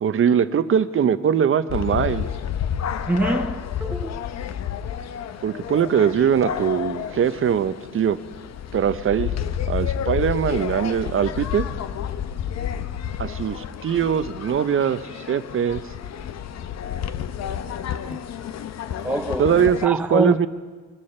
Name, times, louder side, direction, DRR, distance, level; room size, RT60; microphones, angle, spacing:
voice 1, 0.0-2.3 5.4-8.2 8.7-9.3 9.7-11.7 13.2-15.0 15.3-15.8 19.4-20.5, right 8 dB, 45° right, 0.7 m, -21 dB
sound 1, 1.7-19.9, left 9 dB, 60° left, 0.8 m, -30 dB
voice 2, 3.1-4.3 18.0-18.2 18.9-20.4, right 1 dB, 5° right, 0.3 m, -25 dB
22.0 x 12.0 x 4.4 m
cardioid pair, 90°, 30 cm